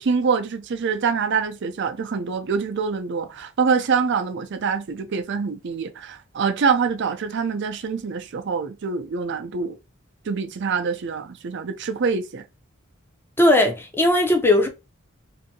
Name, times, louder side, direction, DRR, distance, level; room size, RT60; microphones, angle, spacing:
voice 1, 0.0-9.8 10.3-12.4, right 5 dB, 55° right, 0.5 m, -25 dB
voice 2, 13.4-14.7, left 1 dB, 10° left, 0.5 m, -18 dB
2.6 x 2.6 x 2.6 m
head